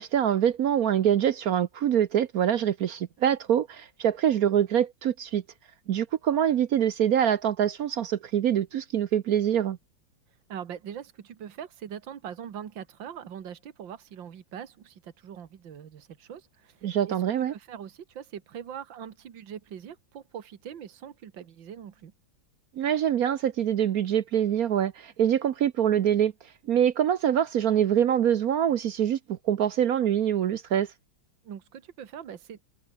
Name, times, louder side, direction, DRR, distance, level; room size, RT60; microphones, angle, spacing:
voice 1, 0.0-5.4 5.9-9.8 16.8-17.5 22.8-26.3 26.7-30.9, right 9 dB, 60° right, 1.0 m, -24 dB
voice 2, 10.3-22.1 31.4-32.6, right 8 dB, 80° right, 2.2 m, -42 dB
omnidirectional pair, 2.0 m